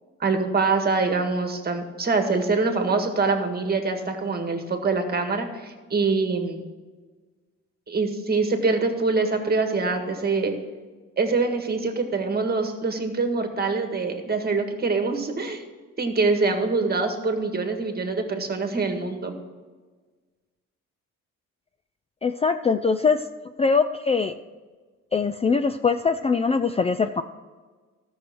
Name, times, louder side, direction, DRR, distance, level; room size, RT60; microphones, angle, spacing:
voice 1, 0.2-6.7 7.9-10.5 11.2-15.6 16.0-19.3, right 3 dB, 30° right, 5 dB, 1.8 m, -24 dB
voice 2, 22.2-23.3 23.6-24.3 25.1-27.2, left 5 dB, 20° left, 9 dB, 0.4 m, -22 dB
13.5 x 6.4 x 6.1 m, 1.4 s
cardioid pair, 90°, 30 cm